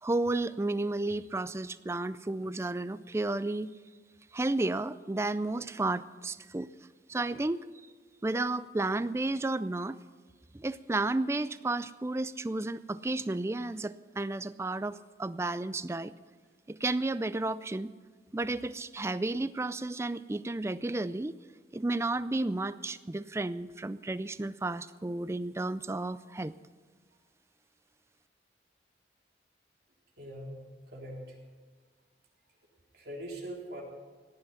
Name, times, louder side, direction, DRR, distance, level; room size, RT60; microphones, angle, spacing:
voice 1, 0.0-3.7 4.3-6.7 7.1-7.7 8.2-10.0 10.5-16.1 16.7-17.9 18.3-21.4 21.7-26.5, right 2 dB, 15° right, 15 dB, 0.3 m, -32 dB
voice 2, 30.2-30.6 30.9-31.4 32.9-33.8, right 1 dB, 70° right, -1 dB, 3.7 m, -41 dB
17.0 x 10.5 x 5.8 m, 1.4 s
head